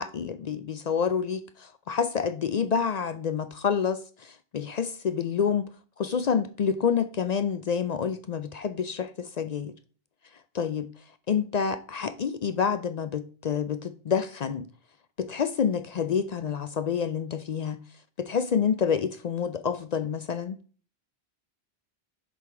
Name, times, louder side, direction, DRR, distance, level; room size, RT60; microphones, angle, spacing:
voice 1, 0.0-5.7 6.0-9.7 10.5-10.9 11.3-14.6 15.2-17.8 18.2-20.6, left 7 dB, 55° left, 0.5 m, -28 dB
7.1 x 5.0 x 4.7 m
omnidirectional pair, 1.1 m